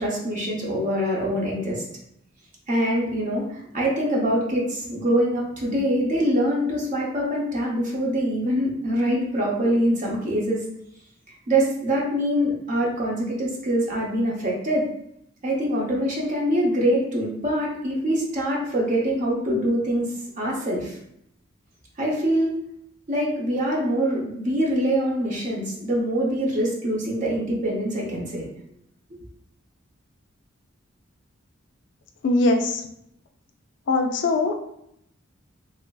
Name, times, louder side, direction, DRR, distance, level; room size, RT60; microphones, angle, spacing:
voice 1, 0.0-1.8 2.7-10.6 11.5-14.9 15.4-21.0 22.0-22.6 23.1-28.5, equal, 40° right, -3 dB, 0.6 m, -24 dB
voice 2, 32.2-32.8 33.9-34.6, left 2 dB, 60° left, 4 dB, 0.3 m, -21 dB
3.0 x 2.5 x 2.2 m, 0.76 s
head